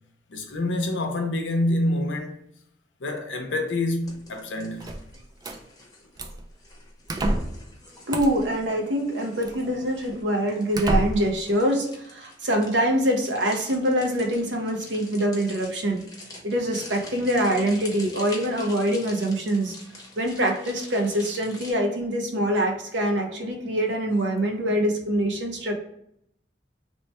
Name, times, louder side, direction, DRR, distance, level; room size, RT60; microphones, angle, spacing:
voice 1, 0.3-2.4 3.0-4.8, left 1 dB, 85° left, 0.6 m, -26 dB
sound 1, 4.0-21.7, left 2 dB, 20° left, 0.8 m, -46 dB
sound 2, 4.8-5.6 6.2-6.5 7.1-7.6 8.1-8.5 9.4-9.5 10.1-10.2 10.7-11.4, right 1 dB, 20° right, 0.3 m, -28 dB
voice 2, 8.1-16.0 16.4-19.7 20.2-25.7, right 1 dB, 75° right, 0.7 m, -24 dB
3.0 x 2.1 x 4.1 m
head